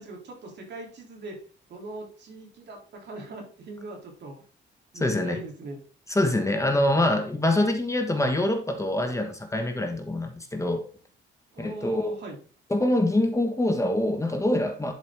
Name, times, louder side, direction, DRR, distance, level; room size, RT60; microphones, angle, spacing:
voice 1, 0.0-1.4 1.7-4.4 4.9-5.8 11.5-12.4, right 2 dB, 60° right, 3.2 m, -40 dB
voice 2, 5.0-5.4 6.1-10.8 11.6-12.1 12.7-14.9, left 1 dB, 15° left, 1.3 m, -25 dB
10.5 x 5.0 x 3.6 m
cardioid pair, 90°, 20 cm